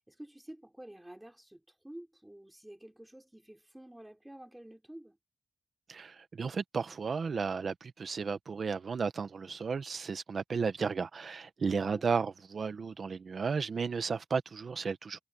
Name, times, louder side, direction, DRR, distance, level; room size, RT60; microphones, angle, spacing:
voice 1, 0.0-5.2 11.8-12.1, right 1 dB, 5° right, 5.3 m, -50 dB
voice 2, 5.9-15.2, right 5 dB, 50° right, 1.1 m, -34 dB
wide cardioid pair, 170°, 0 cm